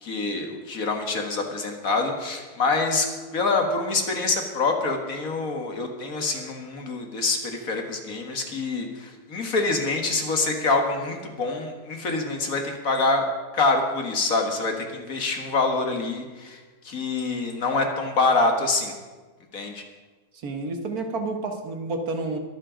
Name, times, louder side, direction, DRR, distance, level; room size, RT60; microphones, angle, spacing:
voice 1, 0.0-3.1 3.3-13.3 13.5-16.6 16.9-18.9 19.5-19.8, left 3 dB, 60° left, 3 dB, 2.0 m, -25 dB
voice 2, 20.3-22.4, right 3 dB, 65° right, 5 dB, 1.7 m, -30 dB
22.0 x 7.6 x 5.0 m, 1.3 s
omnidirectional pair, 1.7 m